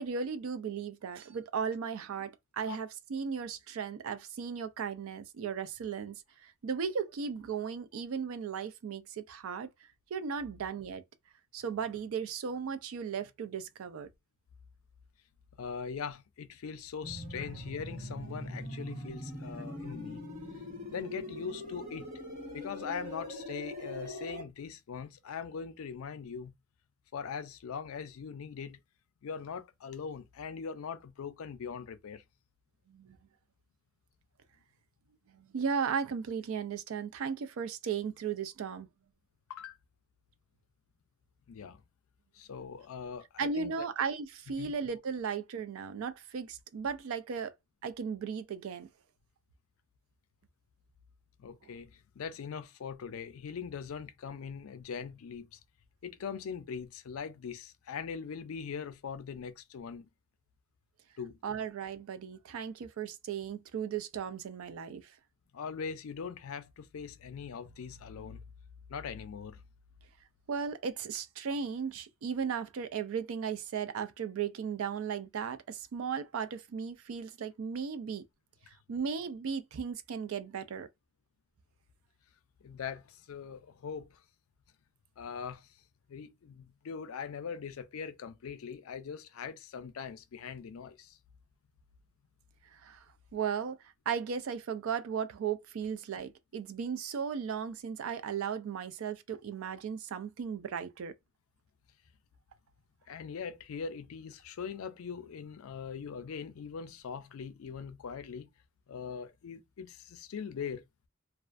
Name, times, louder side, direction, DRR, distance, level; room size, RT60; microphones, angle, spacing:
voice 1, 0.0-9.7 10.1-11.0 11.5-14.1 19.6-19.9 32.9-33.2 35.3-38.9 43.4-47.5 47.8-48.9 51.6-51.7 61.4-65.1 70.5-78.2 78.9-80.9 92.7-93.0 93.3-93.8 94.1-101.1, right 6 dB, 70° right, 0.4 m, -36 dB
voice 2, 15.6-20.3 20.9-22.1 22.5-26.5 27.1-28.8 29.2-32.2 39.5-39.8 41.5-41.8 42.3-43.9 44.6-44.7 51.4-55.6 56.0-60.1 61.2-61.4 65.5-68.4 68.9-69.6 82.6-84.2 85.2-85.7 86.1-91.2 103.1-108.5 108.9-110.8, left 6 dB, 75° left, 0.4 m, -41 dB
sound 1, 17.0-24.4, left 1 dB, 35° right, 1.3 m, -42 dB
2.4 x 2.1 x 2.4 m
head